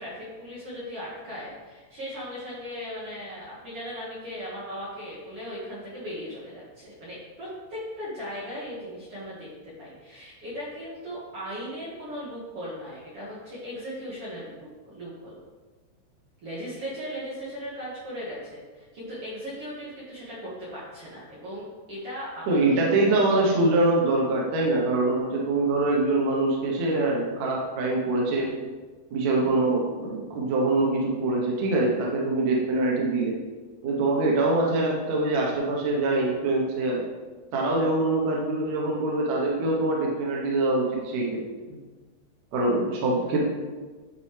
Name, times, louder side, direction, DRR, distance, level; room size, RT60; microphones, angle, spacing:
voice 1, 0.0-15.4 16.4-23.5, equal, 50° right, -9 dB, 1.9 m, -38 dB
voice 2, 22.5-28.5 29.1-33.4 33.8-37.0 37.5-41.4 42.5-43.4, right 2 dB, 80° right, -2 dB, 1.5 m, -24 dB
11.5 x 4.2 x 3.3 m, 1.3 s
omnidirectional pair, 4.8 m